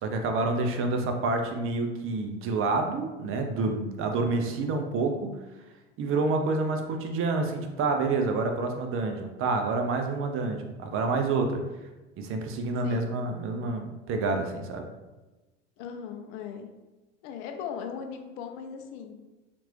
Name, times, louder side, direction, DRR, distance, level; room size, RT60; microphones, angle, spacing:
voice 1, 0.0-5.3 6.0-11.6 12.2-14.9, right 3 dB, 35° right, 4 dB, 0.6 m, -28 dB
voice 2, 12.8-13.2 15.8-16.7 17.2-19.1, left 7 dB, 55° left, 5 dB, 0.5 m, -38 dB
3.0 x 2.5 x 3.0 m, 1.1 s
hypercardioid pair, 80°, 37 cm